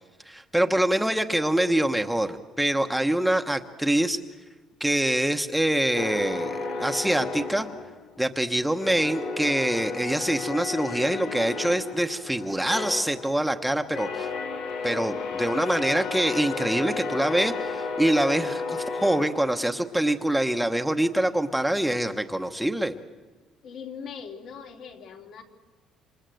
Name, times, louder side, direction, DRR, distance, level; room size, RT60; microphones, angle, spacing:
voice 1, 0.3-4.2 4.8-7.7 8.2-14.3 14.8-22.9, right 1 dB, 5° right, 6 dB, 1.0 m, -25 dB
sound 1, 5.9-8.4 8.8-20.0, left 4 dB, 85° left, 3.5 m, -33 dB
voice 2, 23.6-25.4, left 6 dB, 65° left, 2 dB, 3.4 m, -40 dB
27.5 x 26.5 x 7.8 m, 1.3 s
cardioid pair, 135°, 0 cm